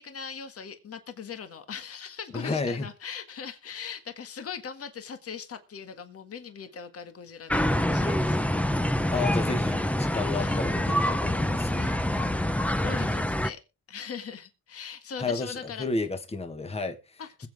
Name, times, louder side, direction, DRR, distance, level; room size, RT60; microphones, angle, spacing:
voice 1, 0.0-8.4 10.4-10.7 11.8-13.6 13.9-15.9 17.2-17.5, left 6 dB, 50° left, 1.9 m, -40 dB
voice 2, 2.3-2.8 9.1-11.8 15.2-17.2, left 3 dB, 20° left, 1.5 m, -32 dB
sound 1, 7.5-13.5, left 1 dB, 5° left, 0.8 m, -26 dB
21.0 x 7.9 x 3.6 m
cardioid pair, 90°, 30 cm